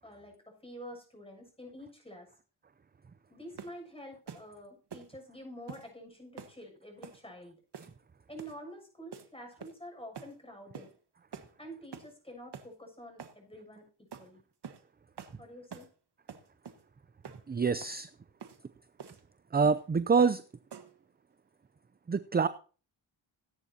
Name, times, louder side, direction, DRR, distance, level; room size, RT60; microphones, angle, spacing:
voice 1, 0.0-2.3 3.3-7.6 8.3-10.9 11.6-14.4 15.4-15.9, equal, 10° left, 2 dB, 7.1 m, -48 dB
sound 1, 3.6-3.8 4.3-4.5 4.9-5.1 5.7-5.9 6.4-6.6 7.0-7.2 7.7-8.0 8.4-8.6 9.1-9.3 9.6-9.9 10.2-10.3 10.7-10.9 11.3-11.5 11.9-12.1 12.5-12.7 13.2-13.4 14.1-14.3 14.6-14.8 15.2-15.4 15.7-15.9 16.3-16.8 17.2-17.4 17.8-18.0 18.4-18.6 19.0-19.2 19.6-19.9 20.2-20.4 20.7-21.0, right 6 dB, 60° right, 1.5 m, -47 dB
voice 2, 17.5-18.1 19.5-20.4 22.1-22.5, right 5 dB, 20° right, 14 dB, 0.5 m, -26 dB
18.0 x 9.7 x 2.8 m, 0.37 s
cardioid pair, 65°, 47 cm